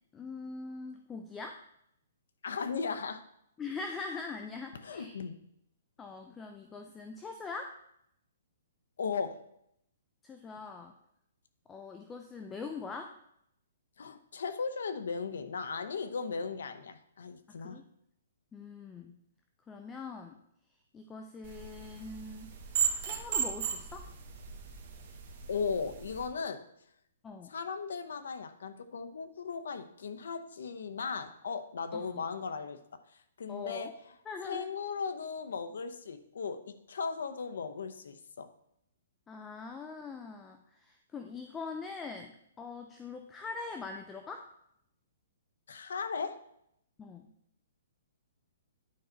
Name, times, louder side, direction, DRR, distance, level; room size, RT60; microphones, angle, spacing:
voice 1, 0.1-1.6 3.6-5.1 6.0-7.7 10.2-10.9 11.7-13.1 17.5-17.8 18.5-19.2 19.7-20.4 20.9-24.1 27.2-27.5 31.9-32.2 33.5-33.9 34.3-34.7 39.3-42.3 42.6-44.5 47.0-47.3, left 4 dB, 10° left, 5 dB, 0.4 m, -42 dB
voice 2, 2.4-3.2 4.8-5.4 9.0-9.4 14.0-17.8 25.5-26.6 27.4-32.8 33.1-33.9 34.4-38.5 45.7-46.4, left 5 dB, 75° left, 9 dB, 0.8 m, -37 dB
sound 1, 21.4-26.3, right 8 dB, 35° right, 1.2 m, -36 dB
9.5 x 4.6 x 4.0 m, 0.74 s
hypercardioid pair, 170°, 0 cm